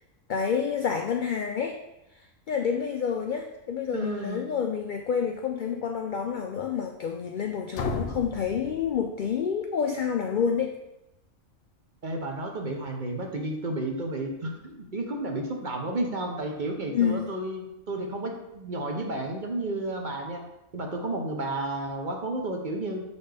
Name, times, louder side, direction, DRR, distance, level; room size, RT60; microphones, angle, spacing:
voice 1, 0.3-1.8 2.5-10.8 16.9-17.3, left 7 dB, 80° left, 4 dB, 0.4 m, -28 dB
voice 2, 3.9-4.5 12.0-20.4 20.7-23.0, right 2 dB, 45° right, 1 dB, 0.8 m, -32 dB
sound 1, 7.7-9.6, left 4 dB, 65° left, 0.8 m, -34 dB
6.8 x 4.1 x 3.4 m, 0.91 s
omnidirectional pair, 1.4 m